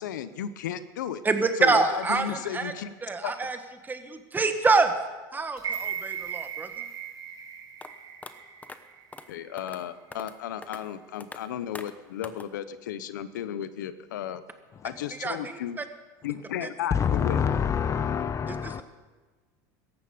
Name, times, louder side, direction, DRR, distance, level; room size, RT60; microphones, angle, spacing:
voice 1, 0.0-1.2 1.6-2.9 3.2-3.3 9.3-14.4 14.8-15.8 16.2-17.4, left 10 dB, 90° left, 13 dB, 0.8 m, -34 dB
voice 2, 1.2-2.7 3.0-3.6 3.8-4.9 5.3-6.7 15.2-15.8 16.6-16.7 18.5-18.8, right 4 dB, 20° right, 8 dB, 1.7 m, -26 dB
sound 1, 5.6-9.7 10.1-10.2, right 8 dB, 40° right, 2.6 m, -37 dB
sound 2, 7.8-7.9 8.2-8.3 8.6-8.8 9.1-9.3 9.6-9.8 10.1-10.4 10.6-10.8 11.2-11.4 11.8-11.9 12.2-12.5, left 3 dB, 15° left, 1.0 m, -42 dB
voice 3, 16.9-18.8, left 7 dB, 30° left, 13 dB, 0.8 m, -26 dB
17.5 x 14.0 x 5.2 m, 1.3 s
supercardioid pair, 100°, 10 cm